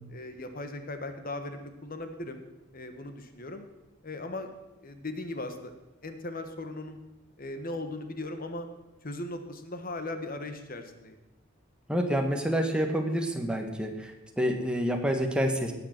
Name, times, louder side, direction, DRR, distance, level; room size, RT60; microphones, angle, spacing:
voice 1, 0.1-2.4 2.7-3.6 4.0-4.5 4.8-5.7 6.0-7.0 7.4-8.7 9.0-11.2, left 2 dB, 45° left, 7 dB, 1.4 m, -38 dB
voice 2, 11.9-15.7, equal, 5° right, 3 dB, 1.5 m, -28 dB
19.0 x 6.9 x 6.6 m, 1.0 s
head